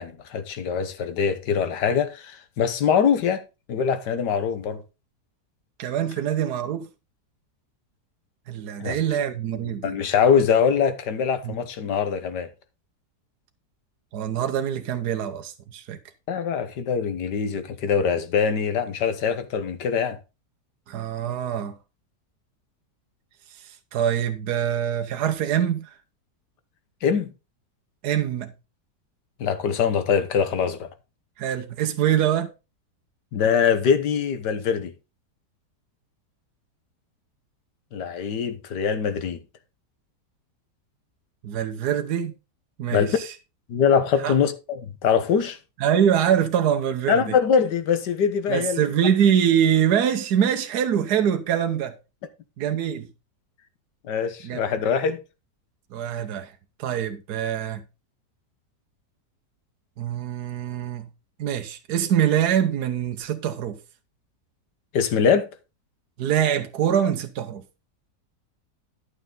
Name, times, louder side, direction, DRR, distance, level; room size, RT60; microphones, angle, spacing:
voice 1, 0.0-3.4 3.7-4.8 8.8-9.0 9.6-12.5 16.3-20.2 27.0-27.3 29.4-30.9 33.3-34.9 37.9-39.4 42.9-43.2 43.7-45.6 47.1-48.9 54.0-55.2 64.9-65.5, left 7 dB, 80° left, 1.7 m, -23 dB
voice 2, 5.8-6.9 8.5-9.9 11.4-11.5 14.1-16.0 20.9-21.7 23.6-26.0 28.0-28.5 31.4-32.5 41.4-42.3 42.8-43.3 44.2-44.3 45.8-47.2 48.5-51.9 52.6-53.1 54.4-54.6 55.9-56.5 56.8-57.8 60.0-61.1 61.4-63.8 66.2-67.6, right 9 dB, 70° right, 1.4 m, -24 dB
11.5 x 6.4 x 3.9 m
omnidirectional pair, 1.8 m